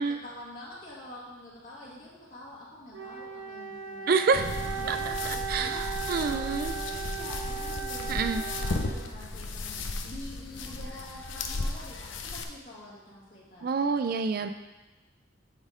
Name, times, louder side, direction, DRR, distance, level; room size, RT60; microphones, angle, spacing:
voice 1, 0.0-4.1 4.8-5.8 6.2-13.7, left 1 dB, 45° left, -7 dB, 1.7 m, -46 dB
Wind instrument woodwind instrument, 2.9-9.3, right 7 dB, 80° right, 1.6 m, -37 dB
voice 2, 4.1-4.5 4.9-5.0 5.3-6.7 8.1-8.4 13.6-14.5, right 5 dB, 50° right, 8 dB, 0.4 m, -27 dB
sound 1, 4.3-12.4, left 3 dB, 85° left, 0.7 m, -35 dB
9.9 x 4.2 x 4.9 m, 1.1 s
head